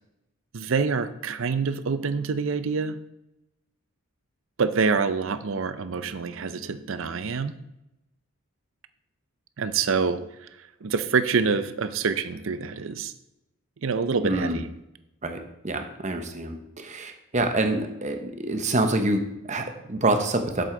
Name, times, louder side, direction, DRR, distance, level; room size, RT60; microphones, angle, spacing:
voice 1, 0.5-3.0 4.6-7.6 9.6-10.5 10.8-13.1 13.8-14.7, right 5 dB, 60° right, 12 dB, 0.5 m, -26 dB
voice 2, 14.2-14.6 15.2-20.6, right 2 dB, 35° right, 6 dB, 0.9 m, -26 dB
7.8 x 7.7 x 3.8 m, 0.88 s
head